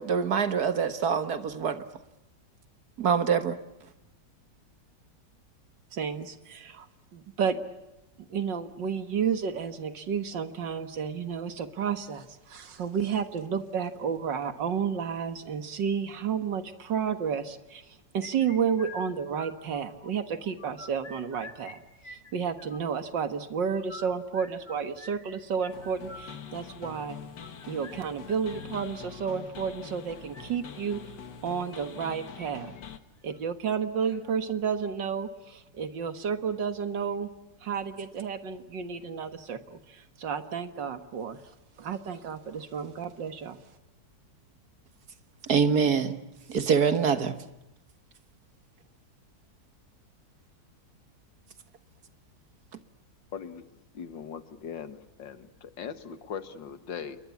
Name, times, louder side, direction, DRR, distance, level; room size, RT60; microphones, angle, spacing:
voice 1, 0.0-1.9 3.0-3.6 45.4-46.2 46.5-47.4, right 6 dB, 60° right, 10 dB, 2.0 m, -25 dB
voice 2, 5.9-6.9 7.1-7.6 8.2-17.9 18.1-21.8 22.1-27.2 27.7-31.0 31.4-32.7 33.2-37.3 37.6-41.4 41.8-43.6, right 7 dB, 85° right, 9 dB, 2.3 m, -31 dB
sound 1, 18.2-20.1 20.4-21.8 22.0-23.0 23.7-29.4 30.1-30.4 31.7-32.5 32.8-32.9 33.3-33.4 34.0-34.4, left 2 dB, 15° left, 4.0 m, -47 dB
sound 2, 25.7-33.0, left 7 dB, 75° left, 2.2 m, -44 dB
voice 3, 53.3-53.6 53.9-57.2, left 7 dB, 90° left, 11 dB, 2.3 m, -40 dB
28.5 x 23.0 x 8.5 m, 0.92 s
omnidirectional pair, 1.9 m